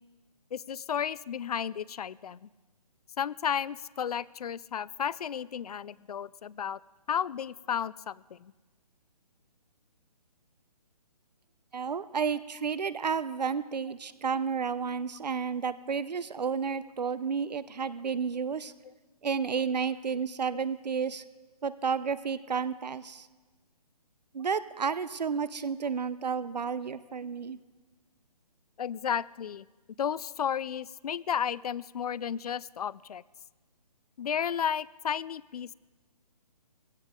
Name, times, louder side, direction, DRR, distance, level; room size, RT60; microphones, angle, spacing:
voice 1, 0.5-2.5 3.2-6.8 7.1-8.5 28.8-29.7 30.0-33.2 34.2-35.7, left 8 dB, 70° left, 22 dB, 0.5 m, -33 dB
voice 2, 11.7-18.7 19.2-21.2 21.6-23.3 24.3-27.6, right 6 dB, 90° right, 15 dB, 0.7 m, -31 dB
20.0 x 16.5 x 3.7 m, 1.3 s
hypercardioid pair, 155°, 21 cm